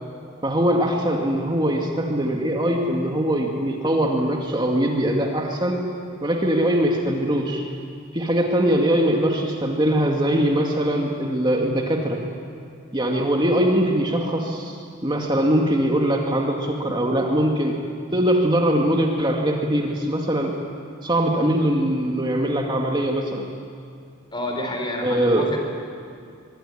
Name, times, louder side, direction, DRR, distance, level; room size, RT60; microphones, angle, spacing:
voice 1, 0.4-5.8 6.2-7.7 8.1-12.2 12.9-17.8 18.1-20.5 21.0-23.5 25.0-25.6, right 1 dB, 25° right, 0 dB, 2.2 m, -22 dB
voice 2, 24.3-25.6, left 1 dB, 25° left, 2 dB, 4.9 m, -29 dB
24.0 x 23.0 x 9.9 m, 2.3 s
head